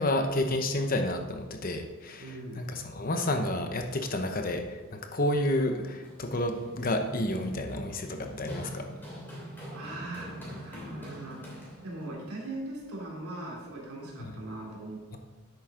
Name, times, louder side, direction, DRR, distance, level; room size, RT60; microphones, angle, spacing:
voice 1, 0.0-2.3 2.6-8.9 14.2-14.3, left 1 dB, 40° left, 5 dB, 0.9 m, -30 dB
voice 2, 2.2-2.6 9.7-11.4 11.8-15.2, right 2 dB, 80° right, -3 dB, 3.1 m, -40 dB
Run, 5.7-12.1, equal, 10° left, 2.9 m, -43 dB
10.5 x 8.1 x 3.8 m, 1.2 s
head